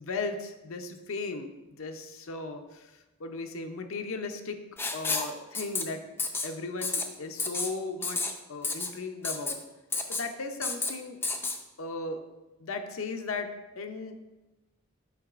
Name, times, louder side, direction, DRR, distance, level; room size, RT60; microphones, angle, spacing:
voice 1, 0.0-1.5 1.8-2.9 3.2-4.6 4.9-6.0 6.4-9.6 10.1-11.2 11.8-12.2 12.6-13.5 13.8-14.2, left 3 dB, 75° left, 6 dB, 0.6 m, -36 dB
Writing, 4.8-5.3 5.5-5.8 6.2-6.5 6.8-7.0 7.4-7.7 8.0-8.3 8.6-8.9 9.2-9.5 9.9-10.2 10.6-10.9 11.2-11.6, left 3 dB, 10° left, 0.3 m, -30 dB
7.8 x 5.3 x 2.5 m, 1.1 s
head